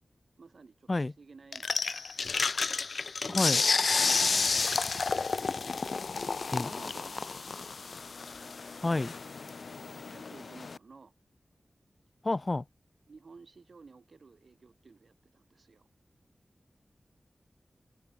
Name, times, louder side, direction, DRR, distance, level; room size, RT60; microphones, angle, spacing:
voice 1, 0.4-2.4 3.2-4.5 4.7-5.3 6.7-7.8 8.8-9.6 10.1-11.1 13.1-15.9, right 4 dB, 70° right, 7.2 m, -55 dB
sound 1, 1.5-10.8, left 4 dB, 70° left, 1.9 m, -31 dB
voice 2, 3.3-3.6 6.5-6.7 8.8-9.1 12.2-12.6, left 2 dB, 35° left, 2.9 m, -29 dB
wide cardioid pair, 75°, 0 cm